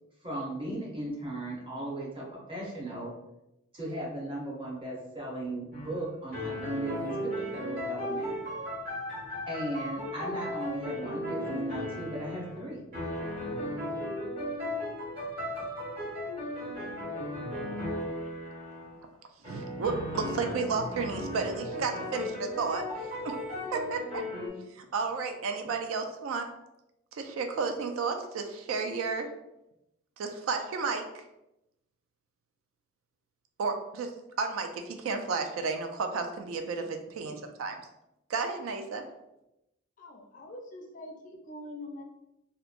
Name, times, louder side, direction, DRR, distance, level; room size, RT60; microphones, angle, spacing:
voice 1, 0.2-3.1 3.7-8.4 9.5-12.8, right 1 dB, 25° right, -4 dB, 0.7 m, -37 dB
sound 1, 5.7-6.0 6.3-12.6 12.9-18.9 19.4-24.5, left 1 dB, 45° right, 1.3 m, -36 dB
voice 2, 19.5-23.3 23.7-24.3 24.7-26.5 27.1-29.3 30.2-31.0 33.6-37.8 38.3-39.1, right 4 dB, 80° right, 6 dB, 0.3 m, -32 dB
voice 3, 40.0-42.0, left 1 dB, 40° left, 2 dB, 0.4 m, -44 dB
2.9 x 2.2 x 2.4 m, 0.89 s
head